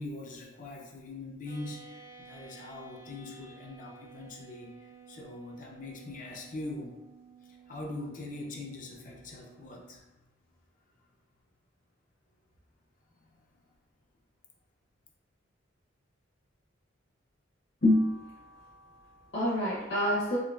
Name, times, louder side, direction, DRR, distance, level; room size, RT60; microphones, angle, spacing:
voice 1, 0.0-7.0 7.4-10.2 10.5-10.6 13.1-13.7, left 2 dB, 40° left, -1 dB, 0.4 m, -42 dB
sound 1, 1.5-10.0, right 5 dB, 75° right, 1.1 m, -54 dB
voice 2, 17.8-20.4, left 1 dB, 55° left, -10 dB, 0.9 m, -28 dB
3.8 x 2.7 x 2.3 m, 1.0 s
head